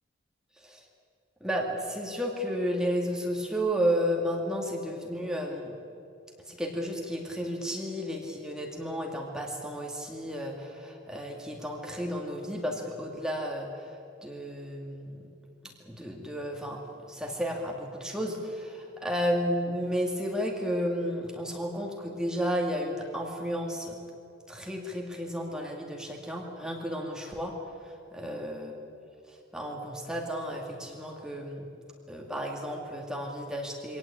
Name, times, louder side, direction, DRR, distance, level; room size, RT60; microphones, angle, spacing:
voice 1, 1.4-5.7 6.5-14.0 14.2-15.3 15.6-24.0 24.5-27.5 27.8-28.7 29.3-31.7 32.1-34.0, equal, 5° right, 0 dB, 2.2 m, -32 dB
24.5 x 18.0 x 8.6 m, 2.6 s
head